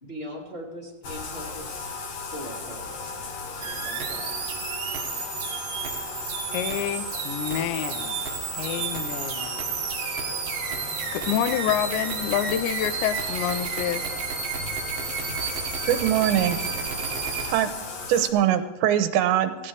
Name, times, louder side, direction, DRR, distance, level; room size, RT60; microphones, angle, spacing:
voice 1, 0.0-1.9 2.3-3.2 3.8-4.5, equal, 30° left, -4 dB, 1.1 m, -40 dB
Bathtub (filling or washing), 1.0-18.3, left 4 dB, 60° left, 1.8 m, -36 dB
sound 1, 2.4-17.2, left 1 dB, 45° left, 6.2 m, -49 dB
sound 2, 3.6-17.5, right 6 dB, 60° right, 3.1 m, -32 dB
voice 2, 6.5-8.2 8.5-9.6 11.1-14.1, left 11 dB, 80° left, 12 dB, 2.9 m, -28 dB
voice 3, 15.9-16.6 17.5-17.7 18.1-19.7, right 11 dB, 85° right, 10 dB, 3.1 m, -22 dB
17.5 x 16.5 x 3.4 m, 1.3 s
omnidirectional pair, 5.1 m